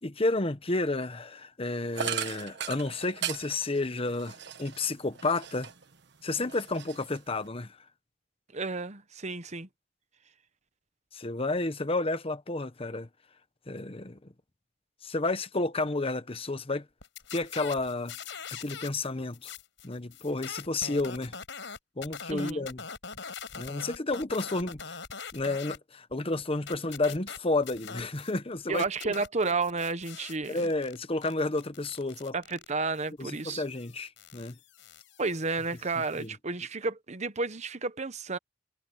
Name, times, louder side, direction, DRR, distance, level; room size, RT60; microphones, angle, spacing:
voice 1, 0.0-5.7 6.2-7.8 11.1-13.1 13.7-14.2 15.0-16.8 17.3-18.2 18.5-19.5 19.8-21.3 22.0-22.8 23.5-25.0 25.3-29.1 30.5-32.3 33.2-34.6 36.2-36.3, left 2 dB, 30° left, 1.1 m, -31 dB
sound 1, 1.9-5.9 6.3-7.5, right 8 dB, 65° right, 1.2 m, -37 dB
voice 2, 8.5-9.7 22.3-22.7 28.7-30.7 32.3-33.6 35.2-38.4, right 3 dB, 35° right, 1.0 m, -32 dB
sound 2, 17.0-19.1 19.3-25.8 26.1-28.4 28.7-36.3, left 6 dB, 75° left, 5.5 m, -43 dB
head